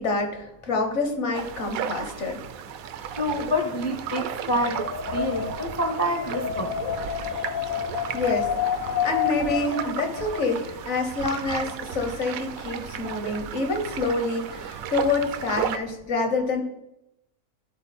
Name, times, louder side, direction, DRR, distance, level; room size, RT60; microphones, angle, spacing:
voice 1, 0.0-2.4 8.1-8.5 9.0-16.6, left 3 dB, 60° left, 4 dB, 1.3 m, -27 dB
sound 1, 1.3-15.8, right 8 dB, 85° right, 1.0 m, -35 dB
voice 2, 3.2-4.8 5.1-6.9, left 1 dB, 30° left, 3 dB, 0.5 m, -27 dB
Wind, 4.5-10.6, left 8 dB, 85° left, 0.4 m, -29 dB
11.5 x 3.9 x 4.2 m, 0.85 s
omnidirectional pair, 1.4 m